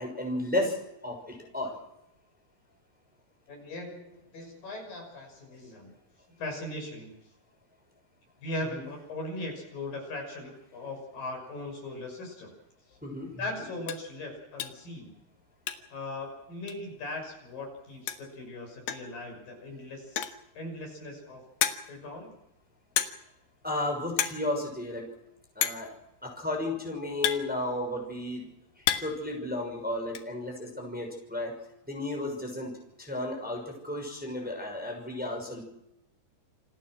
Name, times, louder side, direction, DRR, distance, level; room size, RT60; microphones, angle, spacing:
voice 1, 0.0-1.7 13.0-13.3 23.6-25.1 25.6-25.9 26.2-28.4 29.0-31.5 31.9-35.6, left 1 dB, ahead, 1 dB, 5.8 m, -33 dB
voice 2, 3.5-5.9 6.3-7.1 8.4-12.5 13.4-15.1 15.9-20.2 20.5-21.4 21.9-22.3, left 2 dB, 60° left, 2 dB, 7.7 m, -39 dB
sound 1, 12.9-13.1 13.4-13.5 13.8-14.1 14.6-14.9 15.2-16.1 16.3-16.4 16.7-16.8 17.8-17.9 18.1-18.4 18.9-19.2 20.0-20.5 21.0-21.1 21.6-22.1 23.0-23.4 23.6-23.9 24.1-24.5 24.7-24.8 25.6-25.9 26.7-28.1 28.5-29.3 29.5-30.2, left 10 dB, 90° left, 3.5 m, -31 dB
28.5 x 19.5 x 6.3 m, 0.86 s
omnidirectional pair, 4.6 m